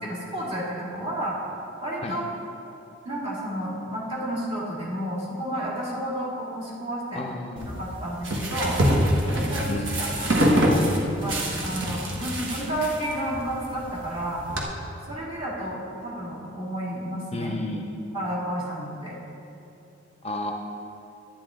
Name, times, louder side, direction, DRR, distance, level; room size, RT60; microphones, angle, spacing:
voice 1, 0.0-1.4 1.8-2.2 3.0-7.2 7.6-8.8 9.3-9.7 10.0-14.4 15.1-17.5 18.1-19.1, right 1 dB, 30° right, -7 dB, 2.4 m, -31 dB
voice 2, 7.1-7.7 9.7-10.8 17.3-17.8 20.2-20.5, left 2 dB, 30° left, 3 dB, 0.5 m, -33 dB
sound 1, 7.6-14.6, equal, 70° right, 1.4 m, -25 dB
10.5 x 9.6 x 3.7 m, 2.9 s
head